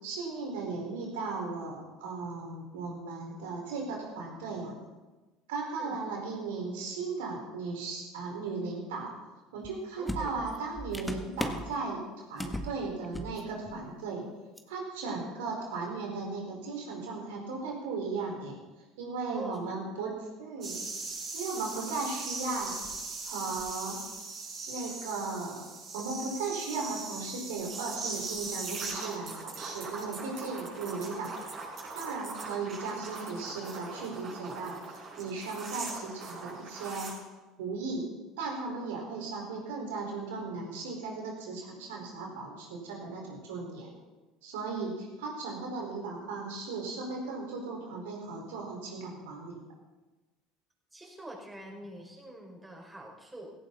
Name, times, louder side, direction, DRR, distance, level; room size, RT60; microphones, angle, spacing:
voice 1, 0.0-4.7 5.5-9.1 9.5-14.2 14.7-18.6 19.0-20.8 21.3-22.7 23.2-24.0 24.7-25.7 25.9-31.5 31.9-37.1 37.6-44.0 44.4-49.6, right 4 dB, 70° right, 0 dB, 4.9 m, -36 dB
voice 2, 5.7-6.0 10.0-10.5 15.1-15.3 19.3-19.9 21.9-22.0 32.4-33.1 50.9-53.5, right 1 dB, 10° right, -1 dB, 5.4 m, -46 dB
sound 1, 9.6-9.7 10.1-11.7 12.4-12.7 13.0-13.4 13.7-13.8 14.6-14.7, equal, 5° left, 1.8 m, -36 dB
sound 2, 20.6-37.1, right 3 dB, 45° right, 6.6 m, -40 dB
17.0 x 16.5 x 4.2 m, 1.2 s
hypercardioid pair, 65°, 0 cm